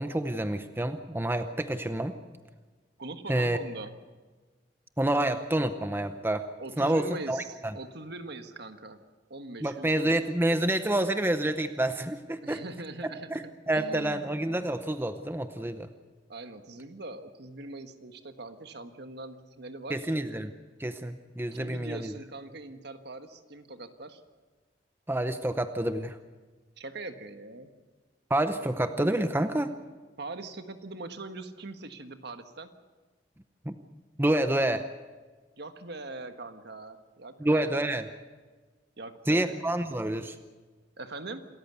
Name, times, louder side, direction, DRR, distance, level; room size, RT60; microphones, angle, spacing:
voice 1, 0.0-2.1 3.3-3.6 5.0-6.5 6.8-7.7 9.6-12.6 13.3-15.9 19.9-20.5 20.8-22.1 25.1-26.2 28.3-29.7 33.7-33.8 34.2-34.8 37.4-38.1 39.3-40.4, right 1 dB, 10° right, 9 dB, 0.7 m, -28 dB
voice 2, 3.0-3.9 6.6-9.0 9.3-10.2 12.4-14.3 16.3-20.1 21.6-24.2 26.8-27.7 30.2-32.7 35.6-37.9 39.0-39.7 41.0-41.5, right 2 dB, 60° right, 8 dB, 1.5 m, -42 dB
27.5 x 14.0 x 8.2 m, 1.4 s
head